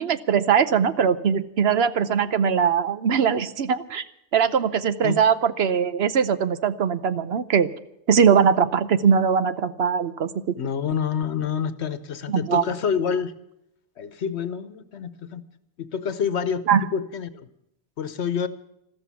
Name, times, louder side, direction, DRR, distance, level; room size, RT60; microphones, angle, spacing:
voice 1, 0.0-4.0 4.3-7.7 8.1-10.6 12.3-12.6 16.7-16.8, right 7 dB, 65° right, 13 dB, 1.0 m, -21 dB
voice 2, 10.6-13.3 14.0-15.4 15.8-17.5 18.0-18.5, left 7 dB, 75° left, 14 dB, 1.2 m, -27 dB
14.0 x 13.5 x 7.0 m, 0.81 s
omnidirectional pair, 1.1 m